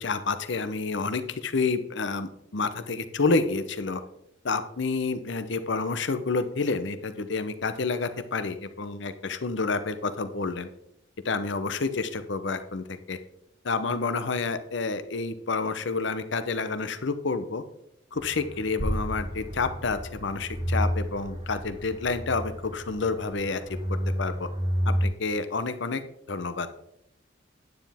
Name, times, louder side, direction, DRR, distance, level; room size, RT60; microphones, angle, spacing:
voice 1, 0.0-4.0 4.4-10.7 11.2-13.2 13.6-17.6 18.1-23.6 23.9-24.5 24.9-26.0 26.3-26.7, left 4 dB, 60° left, 11 dB, 0.7 m, -29 dB
sound 1, 18.1-25.1, equal, 30° right, 1.6 m, -31 dB
9.8 x 9.1 x 3.5 m, 0.78 s
head